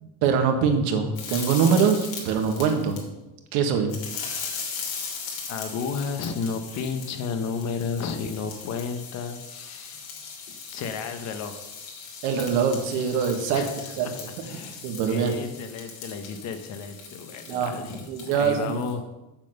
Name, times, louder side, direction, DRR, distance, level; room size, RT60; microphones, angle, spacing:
voice 1, 0.0-3.0 3.5-3.9 12.2-13.7 14.0-14.1 14.8-15.3 17.5-17.7 18.1-18.8, right 6 dB, 85° right, 5 dB, 1.7 m, -23 dB
sound 1, 1.2-3.0 3.9-18.9, left 6 dB, 75° left, 2.9 m, -39 dB
voice 2, 5.5-10.1 10.7-11.6 13.5-19.0, left 5 dB, 45° left, 8 dB, 1.1 m, -33 dB
7.7 x 7.2 x 6.6 m, 1.0 s
cardioid pair, 175°, 37 cm